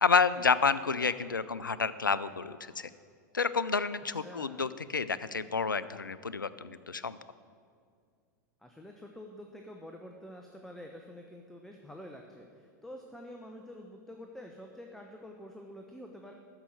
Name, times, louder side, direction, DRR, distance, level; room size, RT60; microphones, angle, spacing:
voice 1, 0.0-2.9 3.3-7.2, left 5 dB, 90° left, 15 dB, 0.4 m, -29 dB
voice 2, 4.1-4.6 8.6-16.3, left 1 dB, 5° left, 2 dB, 0.9 m, -47 dB
13.0 x 5.6 x 9.1 m, 2.2 s
figure-of-eight pair, 95°, 10 cm